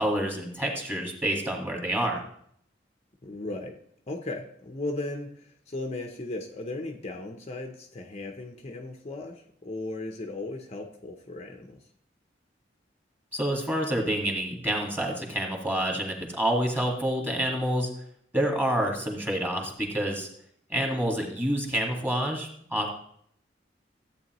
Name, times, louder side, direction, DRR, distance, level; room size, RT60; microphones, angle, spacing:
voice 1, 0.0-2.2 13.3-17.9 18.3-20.3 20.7-22.9, right 1 dB, 10° right, 1 dB, 1.8 m, -28 dB
voice 2, 3.2-3.8 4.1-11.8, left 2 dB, 35° left, 3 dB, 0.7 m, -36 dB
14.0 x 8.3 x 3.0 m, 0.68 s
head